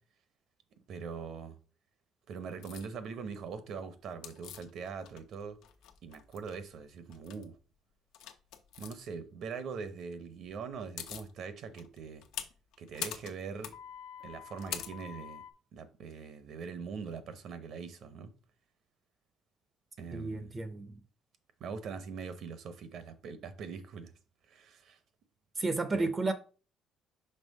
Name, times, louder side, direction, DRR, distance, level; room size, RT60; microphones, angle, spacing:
voice 1, 0.9-1.6 2.3-5.6 6.0-7.6 8.8-12.2 12.8-13.7 14.2-15.4 15.7-18.3 20.0-20.6 21.6-24.1 24.5-25.0 25.9-26.1, right 5 dB, 55° right, 0.8 m, -42 dB
sound 1, 2.6-2.9 4.2-5.3 5.6-6.6 7.1-7.4 8.1-8.9 10.4-10.5 10.7-11.3 11.8-15.5, left 10 dB, 85° left, 0.7 m, -43 dB
voice 2, 20.1-21.0 25.6-26.3, right 3 dB, 20° right, 0.5 m, -32 dB
5.4 x 3.3 x 5.4 m
cardioid pair, 155°, 0 cm